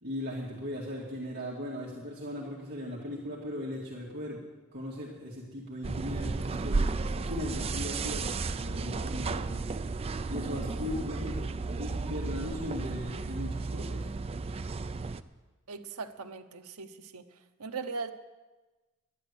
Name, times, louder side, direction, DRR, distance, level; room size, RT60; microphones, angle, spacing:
voice 1, 0.0-4.4 4.7-9.5 10.3-11.5 11.8-14.1, left 1 dB, 50° right, -4 dB, 2.1 m, -38 dB
sound 1, 5.8-15.2, right 3 dB, 25° right, 0.4 m, -33 dB
voice 2, 15.7-17.2 17.6-18.1, right 4 dB, 85° right, 7 dB, 0.9 m, -39 dB
11.5 x 10.5 x 8.2 m, 1.2 s
head